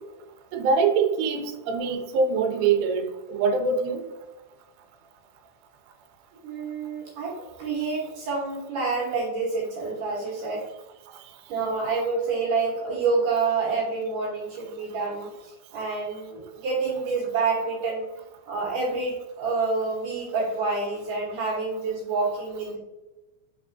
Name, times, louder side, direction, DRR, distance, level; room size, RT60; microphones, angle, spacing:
voice 1, 0.5-4.0, right 5 dB, 85° right, 5 dB, 2.6 m, -24 dB
voice 2, 6.4-10.7 11.5-15.3 15.7-18.1 18.5-22.8, right 4 dB, 70° right, -4 dB, 2.2 m, -28 dB
5.9 x 3.3 x 2.5 m, 1.1 s
omnidirectional pair, 4.7 m